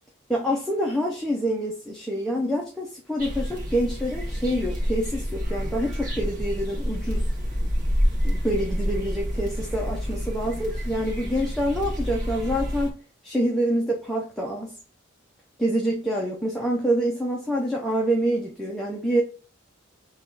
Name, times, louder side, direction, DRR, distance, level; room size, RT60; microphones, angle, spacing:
voice 1, 0.3-7.2 8.2-13.0 13.2-14.8 15.6-19.2, equal, ahead, 0.7 m, -26 dB
sound 1, 3.2-12.9, equal, 40° right, 1.6 m, -28 dB
3.6 x 3.1 x 4.6 m
head